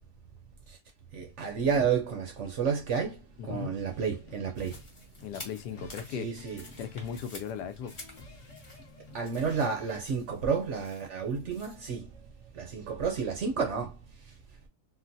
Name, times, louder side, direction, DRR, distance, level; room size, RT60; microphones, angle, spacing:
voice 1, 1.1-4.7 6.1-6.6 9.1-12.1 12.6-13.9, right 6 dB, 60° right, 0.8 m, -31 dB
voice 2, 3.4-3.7 5.2-8.0, left 8 dB, 90° left, 1.2 m, -38 dB
sound 1, 3.9-10.0, left 3 dB, 55° left, 1.0 m, -52 dB
sound 2, 4.6-11.8, left 2 dB, 30° left, 0.6 m, -51 dB
3.7 x 2.1 x 2.6 m
omnidirectional pair, 1.7 m